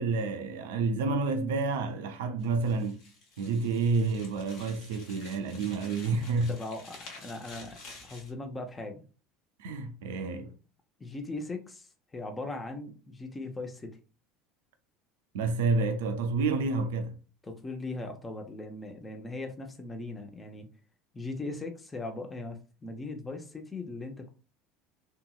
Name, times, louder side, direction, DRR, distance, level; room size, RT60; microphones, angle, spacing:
voice 1, 0.0-3.0 3.4-6.5 9.6-10.6 15.3-17.1, right 4 dB, 75° right, 0.4 m, -29 dB
sound 1, 2.4-8.3, left 3 dB, 60° left, 1.0 m, -50 dB
voice 2, 6.5-9.0 11.0-14.0 17.4-20.7 21.1-24.3, left 2 dB, 20° left, 0.6 m, -39 dB
2.9 x 2.7 x 2.3 m
hypercardioid pair, 70°, 0 cm